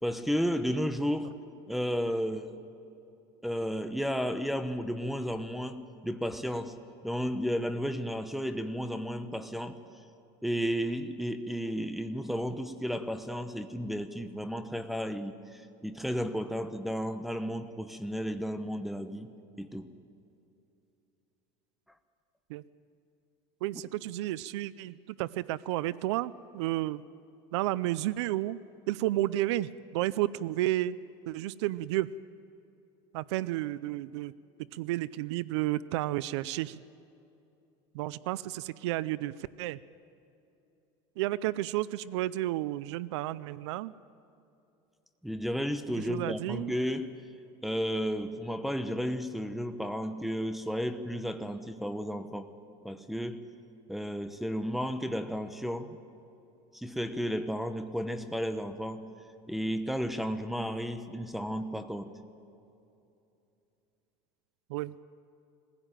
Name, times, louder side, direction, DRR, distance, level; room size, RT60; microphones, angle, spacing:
voice 1, 0.0-1.3 1.7-2.6 3.4-6.8 7.0-9.8 10.4-19.9 45.2-47.2 47.6-52.5 52.8-53.5 53.9-56.0 56.7-59.1 59.5-62.2, equal, ahead, 7 dB, 0.9 m, -33 dB
voice 2, 23.6-27.0 27.5-28.6 28.9-31.0 31.3-32.1 33.1-34.3 34.7-36.8 37.9-39.8 41.2-43.9 46.0-46.7 64.7-64.9, right 15 dB, 90° right, 19 dB, 0.5 m, -32 dB
21.0 x 16.0 x 9.1 m, 2.8 s
supercardioid pair, 145°, 14 cm